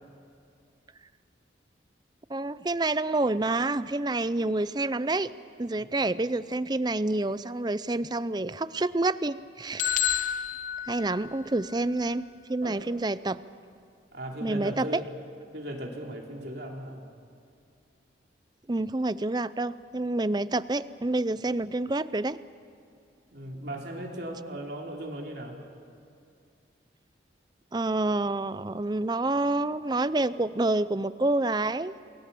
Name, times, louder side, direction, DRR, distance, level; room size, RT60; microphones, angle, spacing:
voice 1, 2.3-5.3 5.6-10.3 10.8-13.4 14.4-14.9 18.7-22.4 27.7-31.9, right 2 dB, 20° right, 15 dB, 0.5 m, -28 dB
sound 1, 9.8-11.7, left 9 dB, 40° left, 0.6 m, -30 dB
voice 2, 14.1-15.2 15.5-17.0 23.3-25.6, right 1 dB, 60° right, 0 dB, 3.3 m, -37 dB
29.0 x 21.5 x 7.0 m, 2.5 s
head